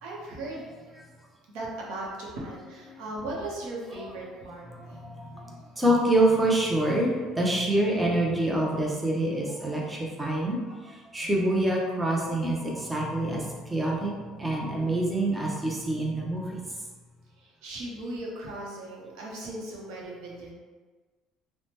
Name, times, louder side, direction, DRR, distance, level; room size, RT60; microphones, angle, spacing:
voice 1, 0.0-0.7 1.5-5.0 17.4-20.5, right 1 dB, 85° right, -3 dB, 0.7 m, -37 dB
voice 2, 4.9-5.4 5.8-10.6 11.1-13.4 13.7-14.1 14.4-16.6, right 1 dB, 10° right, -3 dB, 0.6 m, -26 dB
2.8 x 2.1 x 3.2 m, 1.4 s
supercardioid pair, 100°, 0 cm